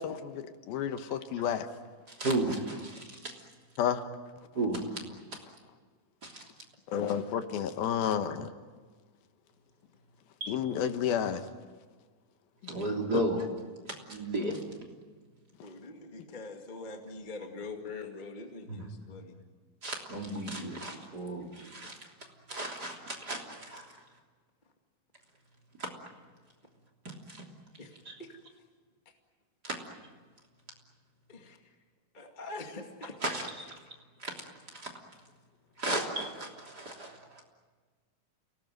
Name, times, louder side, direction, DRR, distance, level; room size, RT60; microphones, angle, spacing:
voice 1, 0.0-1.7 3.8-4.1 6.9-8.5 10.5-11.5 13.1-13.2 16.2-16.3, left 8 dB, 90° left, 9 dB, 3.1 m, -31 dB
voice 2, 2.1-3.3 4.5-4.8 6.2-6.4 10.4-10.5 12.7-13.5 13.9-14.6 18.7-18.9 19.8-22.0 22.5-23.9 25.8-25.9 27.0-27.4 28.0-28.1 29.6-29.8 33.2-33.7 34.2-34.3 34.7-34.9 35.8-37.4, right 1 dB, 30° right, 0 dB, 3.4 m, -34 dB
voice 3, 15.6-19.4 27.8-27.9 28.3-28.4 31.3-31.6 32.1-33.1, left 3 dB, 20° left, 3 dB, 1.5 m, -43 dB
29.0 x 19.0 x 9.2 m, 1.5 s
omnidirectional pair, 4.2 m